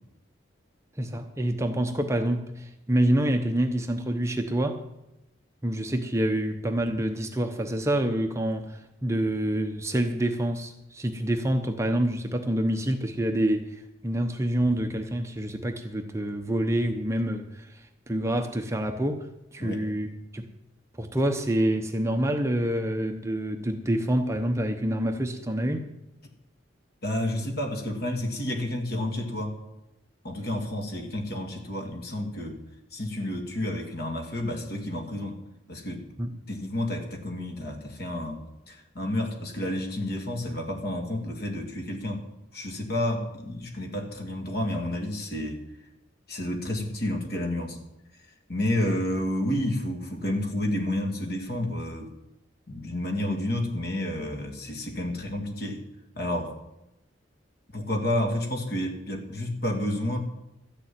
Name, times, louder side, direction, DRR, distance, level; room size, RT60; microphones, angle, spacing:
voice 1, 1.0-4.8 5.6-19.3 19.5-20.5 21.0-25.9 36.2-36.3, right 1 dB, 15° right, 5 dB, 0.8 m, -27 dB
voice 2, 27.0-29.6 30.2-32.6 32.9-35.4 35.7-36.1 36.5-38.4 38.7-45.6 46.3-47.8 48.5-52.1 52.7-55.9 56.2-56.5 57.7-60.2, left 1 dB, 55° left, 3 dB, 2.3 m, -30 dB
13.0 x 6.9 x 9.3 m, 0.90 s
head